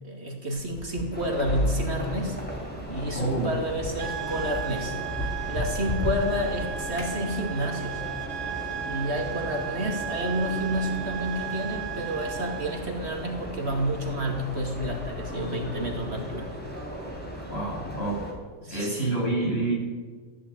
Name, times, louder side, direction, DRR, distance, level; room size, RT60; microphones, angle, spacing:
voice 1, 0.0-2.4 2.9-8.0 8.8-16.5 18.6-19.0, equal, 60° right, 1 dB, 2.8 m, -30 dB
sound 1, 0.6-7.2, equal, 40° left, 3.0 m, -33 dB
sound 2, 1.1-18.3, equal, 10° left, 4.0 m, -37 dB
voice 2, 3.1-3.5 17.5-18.2 18.7-19.7, right 2 dB, 55° left, -4 dB, 7.2 m, -27 dB
sound 3, 4.0-12.9, right 12 dB, 85° right, 1.2 m, -36 dB
14.5 x 11.5 x 8.3 m, 1.5 s
omnidirectional pair, 1.3 m